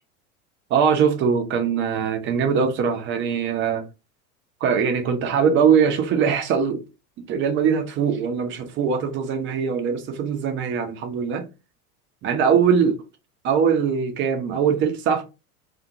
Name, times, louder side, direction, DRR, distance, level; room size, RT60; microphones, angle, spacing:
voice 1, 0.7-3.8 4.6-6.8 7.3-11.4 12.2-13.0 13.4-15.2, right 7 dB, 25° right, 0.6 m, -21 dB
2.5 x 2.4 x 2.8 m
figure-of-eight pair, 80°, 43 cm